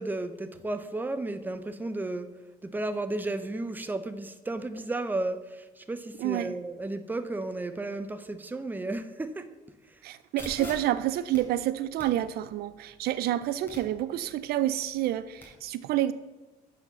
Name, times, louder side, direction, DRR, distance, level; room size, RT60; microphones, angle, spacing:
voice 1, 0.0-2.3 2.6-9.5, right 2 dB, 10° right, 0.6 m, -33 dB
voice 2, 6.2-6.5 10.0-16.1, right 13 dB, 70° right, 0.4 m, -29 dB
sound 1, 10.4-15.4, left 1 dB, 15° left, 2.8 m, -47 dB
7.7 x 4.9 x 6.7 m
cardioid pair, 110°, 17 cm